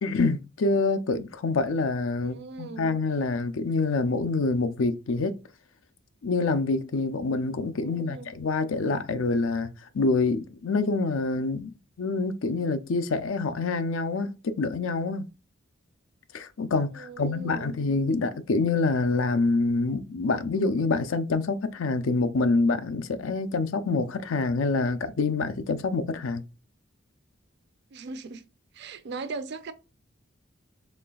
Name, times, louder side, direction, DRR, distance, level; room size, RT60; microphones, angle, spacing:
voice 1, 0.0-5.3 6.2-11.7 12.0-15.2 16.3-26.4, left 3 dB, 80° left, 0.5 m, -26 dB
voice 2, 2.2-2.9 7.7-8.3 16.9-17.8 27.9-28.4 28.7-29.7, right 4 dB, 60° right, 0.5 m, -39 dB
4.2 x 3.1 x 2.3 m
head